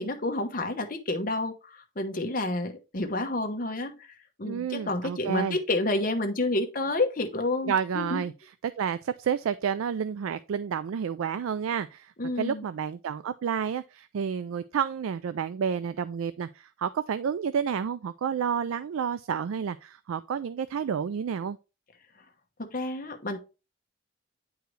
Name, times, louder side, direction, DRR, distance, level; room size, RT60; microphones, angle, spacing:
voice 1, 0.0-8.2 12.2-12.6 22.6-23.4, left 2 dB, 45° left, 1.1 m, -30 dB
voice 2, 4.4-5.6 7.6-8.3 8.8-21.6, right 7 dB, 85° right, 0.4 m, -30 dB
9.2 x 4.7 x 3.2 m
head